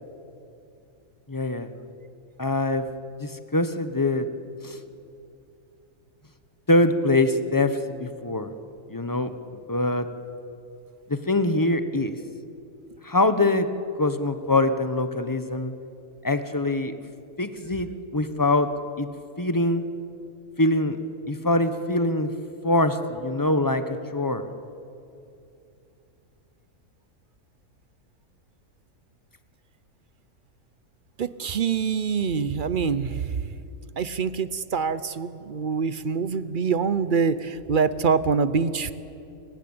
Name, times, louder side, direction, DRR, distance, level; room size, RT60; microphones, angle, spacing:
voice 1, 1.3-1.7 2.4-2.9 3.2-4.3 4.6-4.8 6.7-8.5 8.9-9.3 9.7-10.1 11.1-12.2 13.0-13.7 14.0-15.7 16.2-16.9 17.4-18.7 19.0-19.1 19.4-19.8 20.6-21.0 21.3-22.3 22.6-24.4, left 2 dB, 15° left, 10 dB, 0.7 m, -23 dB
voice 2, 31.2-33.4 34.0-38.9, right 5 dB, 50° right, 15 dB, 0.6 m, -25 dB
30.0 x 15.5 x 8.7 m, 2.7 s
omnidirectional pair, 1.6 m